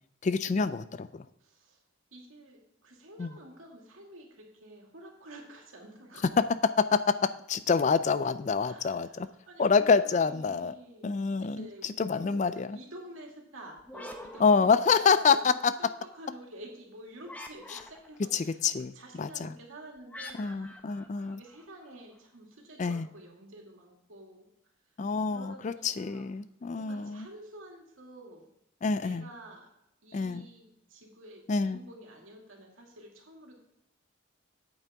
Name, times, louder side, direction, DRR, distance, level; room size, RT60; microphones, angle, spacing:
voice 1, 0.2-1.3 3.2-3.3 6.9-7.1 7.5-9.3 9.6-10.7 11.0-12.8 14.4-15.7 18.3-18.9 19.2-19.5 20.4-21.4 22.8-23.1 25.0-27.3 28.8-29.3 30.1-30.5 31.5-31.8, left 5 dB, 35° left, 13 dB, 0.3 m, -27 dB
voice 2, 1.4-1.8 2.1-6.2 8.6-15.5 15.8-18.6 18.9-20.9 21.3-24.5 25.3-26.3 26.7-28.5 29.0-29.7 30.0-33.6, right 1 dB, 85° right, 0 dB, 2.3 m, -49 dB
sound 1, 13.8-15.4 17.2-18.3 20.1-22.0, left 1 dB, 10° left, 0.7 m, -46 dB
8.9 x 8.3 x 3.5 m, 0.85 s
head